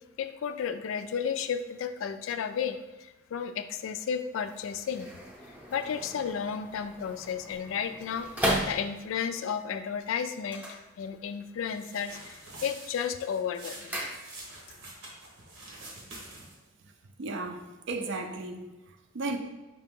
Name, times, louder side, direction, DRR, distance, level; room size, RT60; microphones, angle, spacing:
voice 1, 0.2-5.1 5.7-14.0, left 7 dB, 75° left, 0.3 m, -33 dB
sound 1, 4.3-9.3 10.4-11.5 11.8-12.3 12.7-14.7 15.0-15.1, equal, 10° right, 0.6 m, -36 dB
sound 2, 11.7-16.7, right 2 dB, 90° right, 1.1 m, -46 dB
voice 2, 17.0-19.4, right 3 dB, 65° right, 0.5 m, -35 dB
5.1 x 2.8 x 3.6 m
head